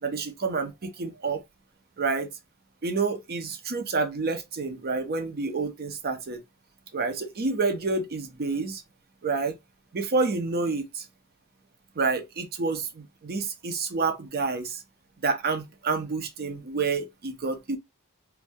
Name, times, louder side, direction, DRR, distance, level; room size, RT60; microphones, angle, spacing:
voice 1, 0.0-1.4 2.0-2.3 2.8-6.4 6.9-8.8 9.2-9.5 9.9-11.0 12.0-14.8 15.2-17.8, right 4 dB, 45° right, 0.6 m, -28 dB
2.6 x 2.1 x 3.4 m
head